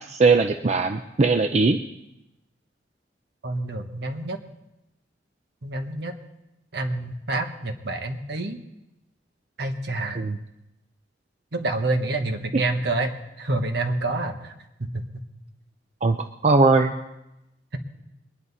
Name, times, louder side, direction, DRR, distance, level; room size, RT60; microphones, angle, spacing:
voice 1, 0.1-1.8 10.2-10.4 12.5-12.6 16.0-16.9, right 3 dB, 40° right, 7 dB, 0.5 m, -20 dB
voice 2, 3.4-4.4 5.6-6.1 6.7-8.6 9.6-10.2 11.5-14.5 14.8-15.0, right 2 dB, 65° right, 6 dB, 1.3 m, -27 dB
22.5 x 10.0 x 4.2 m, 0.91 s
head